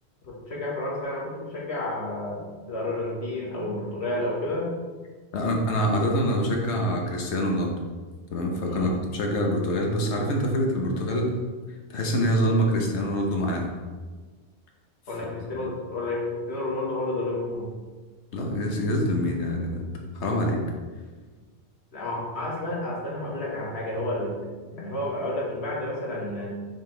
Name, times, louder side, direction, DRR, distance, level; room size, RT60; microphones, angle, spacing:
voice 1, 0.2-2.4 2.7-4.7 8.7-8.9 15.1-17.7 21.9-24.4 24.7-26.5, left 1 dB, 75° left, -4 dB, 1.7 m, -30 dB
voice 2, 5.3-7.7 8.3-11.3 11.9-13.7 15.6-15.7 18.3-20.6, equal, 90° left, 1 dB, 1.3 m, -25 dB
6.6 x 4.4 x 3.2 m, 1.4 s
omnidirectional pair, 1.1 m